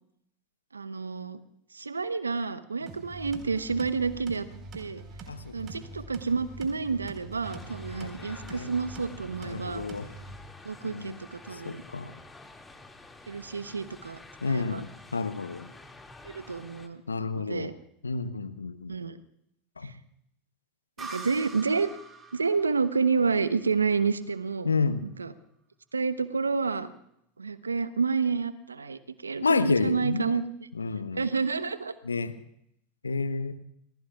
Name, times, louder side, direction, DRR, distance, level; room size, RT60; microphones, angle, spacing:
voice 1, 0.7-1.4 1.7-4.5 4.7-5.0 5.5-9.9 10.6-11.8 13.3-14.8 16.2-17.0 17.3-17.7 18.9-19.2 19.8-19.9 21.0-21.9 22.3-24.7 25.0-25.3 25.9-26.9 27.4-30.4 31.1-31.9, right 5 dB, 85° right, 13 dB, 0.9 m, -29 dB
sound 1, 2.9-10.4, right 3 dB, 40° right, 4.4 m, -44 dB
sound 2, 7.4-16.9, left 2 dB, 10° left, 2.3 m, -49 dB
voice 2, 8.0-8.7 9.4-10.1 10.8-11.2 11.5-12.1 14.4-15.7 17.1-17.7 18.0-19.0 19.8-19.9 24.6-25.0 29.4-30.4 30.8-31.3 32.0-32.3 33.0-33.5, left 4 dB, 85° left, 12 dB, 0.9 m, -30 dB
sound 3, 21.0-24.5, right 3 dB, 20° right, 3.4 m, -45 dB
29.5 x 20.5 x 2.4 m, 0.74 s
figure-of-eight pair, 80°, 0 cm